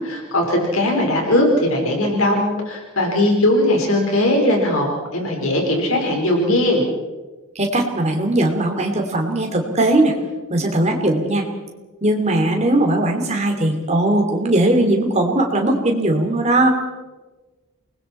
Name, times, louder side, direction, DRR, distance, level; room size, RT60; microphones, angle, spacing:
voice 1, 0.0-4.9 5.1-6.9, left 1 dB, 75° left, 1 dB, 4.6 m, -19 dB
voice 2, 7.5-10.1 10.5-11.4 12.0-16.7, right 1 dB, 30° right, 3 dB, 2.9 m, -19 dB
28.5 x 20.5 x 4.5 m, 1.2 s
head